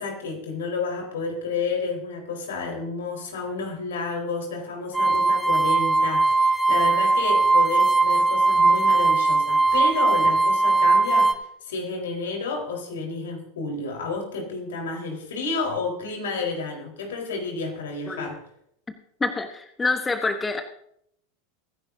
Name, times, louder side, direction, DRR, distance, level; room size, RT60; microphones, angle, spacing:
voice 1, 0.0-18.4, left 4 dB, 75° left, 1 dB, 4.4 m, -31 dB
sound 1, 4.9-11.3, right 3 dB, 10° right, 1.1 m, -19 dB
voice 2, 19.2-20.6, left 3 dB, 15° left, 7 dB, 1.3 m, -26 dB
23.0 x 11.0 x 2.8 m, 0.70 s
hypercardioid pair, 90°, 0 cm